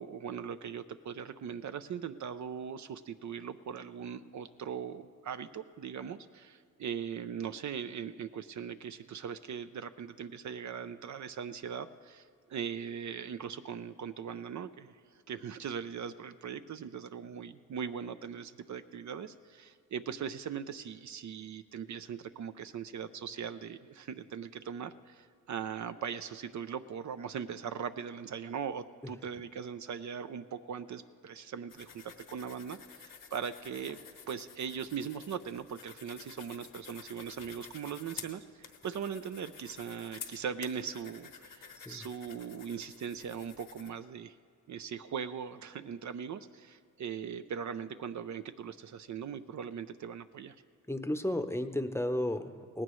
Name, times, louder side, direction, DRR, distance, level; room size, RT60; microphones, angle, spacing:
voice 1, 0.0-34.0 34.3-44.4 44.7-50.6, right 7 dB, 60° right, 10 dB, 0.5 m, -40 dB
sound 1, 31.7-43.9, left 7 dB, 75° left, 1.1 m, -51 dB
voice 2, 41.7-42.1 50.9-52.8, left 1 dB, 10° left, 9 dB, 0.7 m, -33 dB
18.0 x 16.0 x 3.1 m, 2.4 s
cardioid pair, 70°, 33 cm